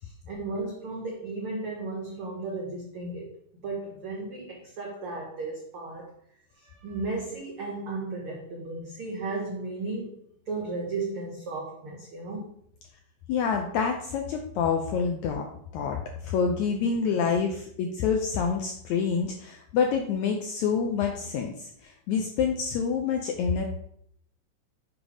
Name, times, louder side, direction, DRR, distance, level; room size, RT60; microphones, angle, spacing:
voice 1, 0.0-3.3 3.6-6.1 6.5-10.2 10.5-12.5, right 3 dB, 85° right, -1 dB, 1.2 m, -35 dB
voice 2, 13.3-15.5 15.7-23.6, left 6 dB, 90° left, 3 dB, 1.7 m, -27 dB
7.3 x 3.3 x 4.9 m, 0.69 s
omnidirectional pair, 3.9 m